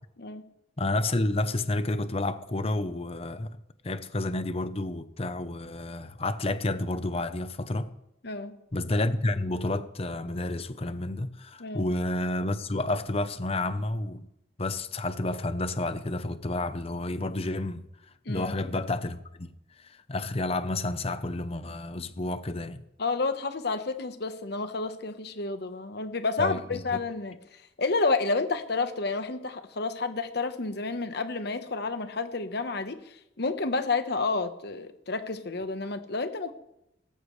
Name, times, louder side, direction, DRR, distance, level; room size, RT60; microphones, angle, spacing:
voice 1, 0.8-3.6 3.8-7.9 8.7-14.3 14.6-17.9 18.3-19.5 20.1-22.8 26.4-26.8, left 2 dB, 30° left, 0.8 m, -30 dB
voice 2, 8.2-8.6 11.6-11.9 18.2-18.5 23.0-36.5, left 3 dB, 60° left, 1.1 m, -30 dB
18.0 x 14.5 x 3.2 m
head